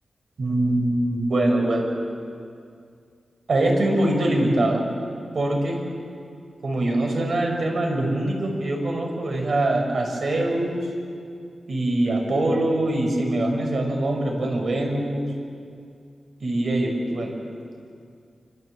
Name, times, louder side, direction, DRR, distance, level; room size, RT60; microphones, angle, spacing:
voice 1, 0.4-1.9 3.5-4.8 5.3-5.8 6.6-10.8 11.7-15.2 16.4-17.3, right 1 dB, 60° right, 1 dB, 6.0 m, -23 dB
27.0 x 26.0 x 8.0 m, 2.3 s
wide cardioid pair, 130°, 0 cm